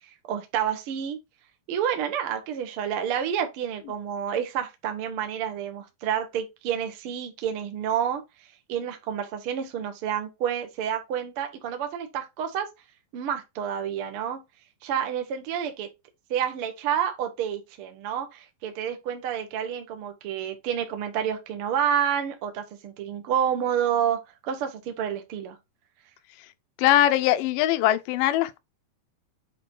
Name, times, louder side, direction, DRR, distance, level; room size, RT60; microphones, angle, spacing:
voice 1, 0.3-1.2 1.7-8.2 8.7-12.7 13.1-14.4 14.8-15.9 16.3-25.6, right 9 dB, 85° right, 1.2 m, -29 dB
voice 2, 26.8-28.6, left 13 dB, 80° left, 1.9 m, -21 dB
7.6 x 3.5 x 4.5 m
omnidirectional pair, 4.5 m